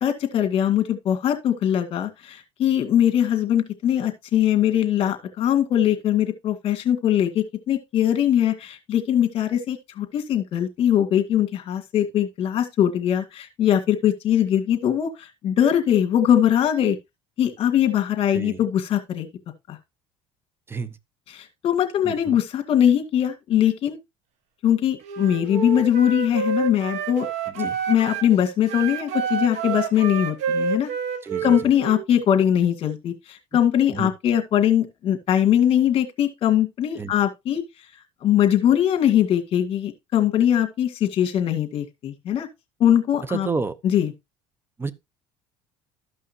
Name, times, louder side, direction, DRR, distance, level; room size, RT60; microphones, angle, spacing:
voice 1, 0.0-17.0 17.4-19.3 19.7-19.8 21.3-24.0 24.6-27.3 27.6-30.9 31.4-37.6 38.2-42.5 42.8-43.5 43.8-44.1, left 10 dB, 50° left, 2.0 m, -21 dB
voice 2, 22.0-22.4 27.6-27.8 31.2-31.6 33.9-34.1 37.0-37.1 43.3-43.8 44.8-44.9, right 4 dB, 20° right, 0.8 m, -30 dB
Wind instrument woodwind instrument, 25.0-28.3 28.6-32.1, right 6 dB, 75° right, 1.3 m, -28 dB
13.5 x 5.5 x 2.8 m
cardioid pair, 105°, 12 cm